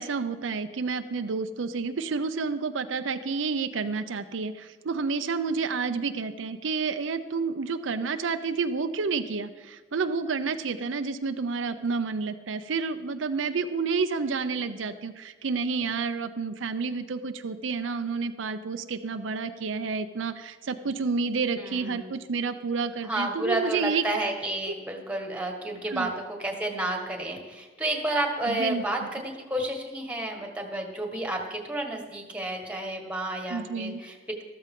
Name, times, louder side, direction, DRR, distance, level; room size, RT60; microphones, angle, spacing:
voice 1, 0.0-24.0 25.9-26.1 28.5-28.8 33.5-34.0, right 4 dB, 80° right, 9 dB, 0.6 m, -30 dB
voice 2, 21.6-22.1 23.0-34.4, right 1 dB, 5° right, 2 dB, 1.6 m, -31 dB
13.5 x 13.5 x 3.7 m, 1.3 s
head